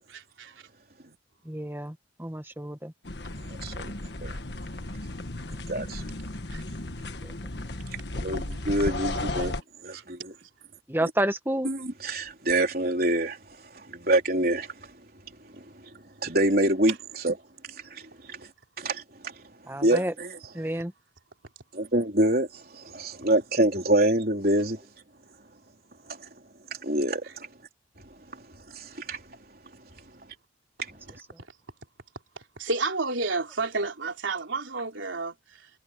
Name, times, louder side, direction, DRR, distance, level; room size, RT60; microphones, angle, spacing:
voice 1, 0.1-0.7 6.5-6.6 9.3-9.5 9.9-10.0 16.9-17.0 27.2-27.3 32.4-35.7, right 3 dB, 80° right, 3.7 m, -31 dB
voice 2, 1.4-2.9 5.7-5.8 7.0-7.3 10.9-11.7 19.7-20.1 20.5-20.9, right 1 dB, 10° right, 1.4 m, -30 dB
sound 1, 3.0-9.6, left 2 dB, 60° left, 1.6 m, -34 dB
voice 3, 3.6-3.9 4.2-4.3 5.7-6.0 8.1-10.3 11.6-13.4 13.9-14.7 16.2-16.9 17.2-17.3 17.9-18.0 18.3-18.4 18.8-19.0 19.8-20.4 21.7-24.8 26.8-27.2 28.7-29.2, right 1 dB, 50° right, 4.0 m, -25 dB
head